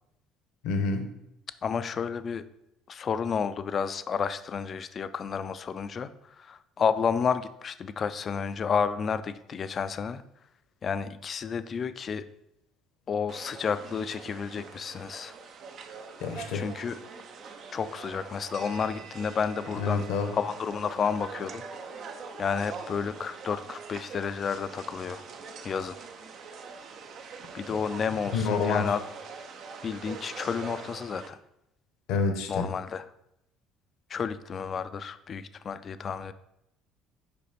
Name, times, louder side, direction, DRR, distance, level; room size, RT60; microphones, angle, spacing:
voice 1, 0.6-1.1 16.2-16.7 19.8-20.4 28.3-28.9 32.1-32.7, left 4 dB, 70° left, 6 dB, 0.8 m, -28 dB
voice 2, 1.6-2.4 2.9-6.1 6.4-10.2 10.8-12.3 13.1-15.3 16.5-17.0 17.7-20.0 20.3-21.6 22.4-25.2 25.6-26.0 27.5-29.0 29.8-31.4 32.5-33.0 34.1-36.3, left 6 dB, 45° left, 13 dB, 0.4 m, -31 dB
sound 1, 13.3-31.3, right 5 dB, 55° right, 0.6 m, -43 dB
5.3 x 4.9 x 4.2 m, 0.83 s
hypercardioid pair, 65°, 0 cm